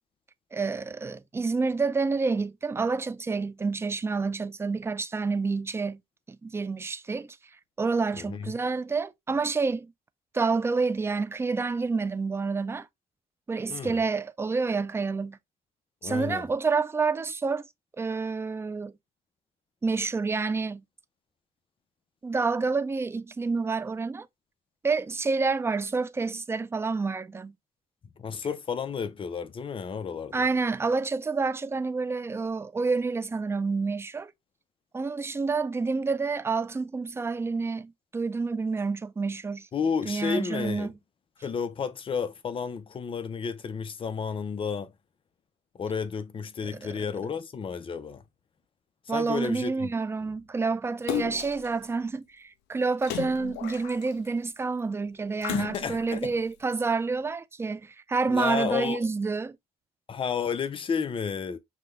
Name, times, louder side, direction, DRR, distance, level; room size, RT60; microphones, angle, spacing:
voice 1, 0.5-6.0 6.3-7.3 7.8-9.9 10.3-12.9 13.5-15.4 16.0-17.6 18.0-18.9 19.8-20.8 22.2-24.3 24.8-27.5 30.3-34.3 34.9-39.7 40.1-40.9 46.8-46.9 49.1-59.6, right 4 dB, 15° right, 0.4 m, -28 dB
voice 2, 8.2-8.5 13.7-14.0 16.0-16.5 28.2-30.4 39.7-40.9 41.4-44.9 45.7-48.2 49.1-49.9 55.5-56.3 58.3-59.1 60.1-61.6, left 6 dB, 30° left, 0.6 m, -32 dB
Splash splatter, 51.1-51.7 53.0-54.3 55.4-56.2 56.8-56.9, left 12 dB, 80° left, 0.5 m, -34 dB
5.8 x 2.3 x 3.2 m
cardioid pair, 110°, 17 cm